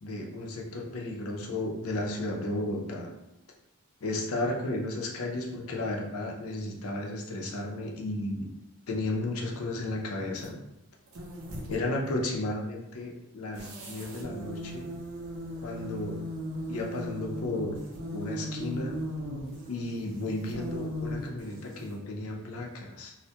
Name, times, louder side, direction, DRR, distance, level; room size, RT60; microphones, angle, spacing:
voice 1, 0.0-3.1 4.0-8.5 8.9-10.6 11.7-14.9 15.6-16.2 16.7-17.8 18.1-19.0 19.7-23.1, left 2 dB, 70° left, 0 dB, 0.4 m, -33 dB
sound 1, 10.3-10.5 11.1-11.8 13.5-22.0, equal, 65° right, 0.5 m, -38 dB
2.2 x 2.0 x 2.7 m, 0.88 s
head